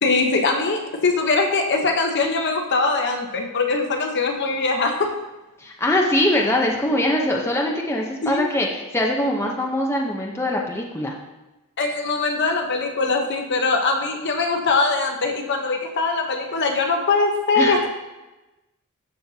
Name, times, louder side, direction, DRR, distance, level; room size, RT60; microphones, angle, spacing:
voice 1, 0.0-5.1 8.2-8.5 11.8-17.9, left 3 dB, 50° left, 3 dB, 1.0 m, -22 dB
voice 2, 5.6-11.1 17.6-17.9, left 1 dB, 10° left, -1 dB, 0.8 m, -22 dB
12.5 x 6.3 x 2.8 m, 1.0 s
head